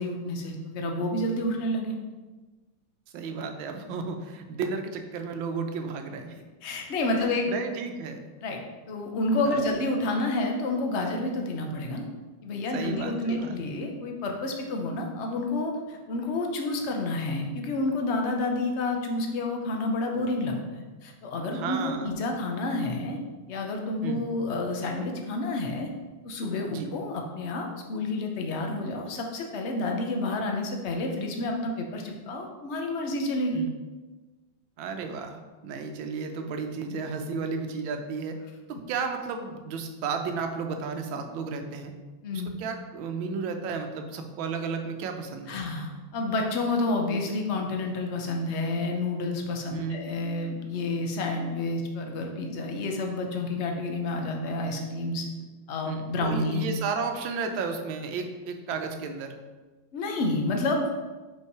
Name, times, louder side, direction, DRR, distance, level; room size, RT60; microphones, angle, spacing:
voice 1, 0.0-2.0 6.6-7.5 8.4-8.6 8.9-12.0 12.4-23.2 23.5-25.9 26.2-33.6 42.2-42.6 45.5-55.2 55.7-56.6 59.9-60.9, left 2 dB, 55° left, 2 dB, 0.8 m, -29 dB
voice 2, 3.1-6.4 7.1-8.2 9.4-9.6 12.7-13.6 14.5-14.7 21.5-22.1 24.0-24.2 26.7-26.9 33.5-33.7 34.8-38.4 38.7-41.9 42.3-45.6 49.7-50.1 55.8-59.3, right 5 dB, 80° right, 5 dB, 1.5 m, -33 dB
5.5 x 4.6 x 4.7 m, 1.2 s
omnidirectional pair, 2.2 m